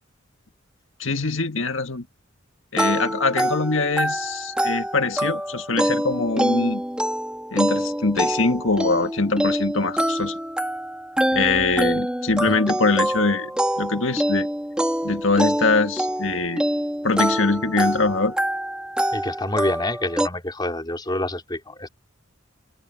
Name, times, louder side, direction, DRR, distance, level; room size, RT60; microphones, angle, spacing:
voice 1, 1.0-2.1 2.7-6.8 7.5-10.4 11.3-13.5 13.8-14.5 15.0-16.6 17.0-18.3, left 3 dB, 70° left, 1.7 m, -23 dB
sound 1, 2.8-20.3, equal, 5° right, 1.8 m, -25 dB
voice 2, 19.1-21.9, left 1 dB, 20° left, 3.5 m, -27 dB
open air
head